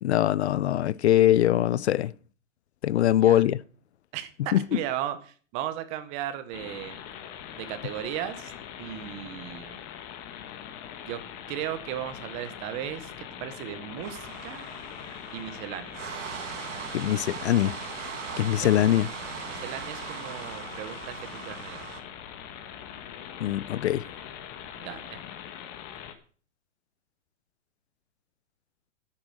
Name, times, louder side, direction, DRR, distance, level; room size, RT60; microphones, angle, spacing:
voice 1, 0.0-2.1 2.8-3.6 4.5-4.6 16.9-17.8 18.4-19.1 23.4-24.0, left 12 dB, 60° left, 0.5 m, -22 dB
voice 2, 4.1-7.0 7.6-8.5 8.8-9.8 11.0-11.2 11.5-14.7 15.3-16.0 18.6-18.9 19.5-21.8 24.7-25.2, right 11 dB, 15° right, 0.7 m, -36 dB
sound 1, 6.5-26.1, left 9 dB, 25° left, 1.3 m, -42 dB
sound 2, 14.0-22.0, right 8 dB, 65° right, 2.0 m, -39 dB
10.5 x 8.6 x 6.3 m
hypercardioid pair, 160°, 38 cm